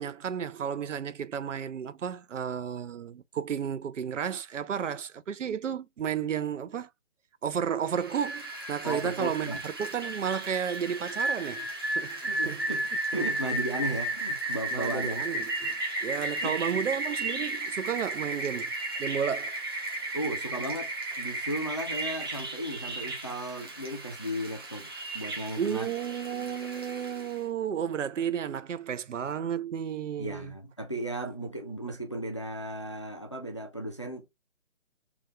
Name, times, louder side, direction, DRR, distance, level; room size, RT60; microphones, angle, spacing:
voice 1, 0.0-6.9 7.4-11.7 12.0-12.7 14.7-15.7 16.0-18.7 19.0-19.6 25.6-30.5, right 8 dB, 85° right, 0.6 m, -32 dB
Rain, 7.9-27.4, right 2 dB, 20° right, 0.6 m, -34 dB
voice 2, 8.8-9.6 12.3-15.2 16.4-16.8 20.1-20.9 21.2-25.9 30.2-34.3, right 1 dB, 25° left, 0.4 m, -35 dB
3.4 x 2.4 x 3.0 m
figure-of-eight pair, 160°, 36 cm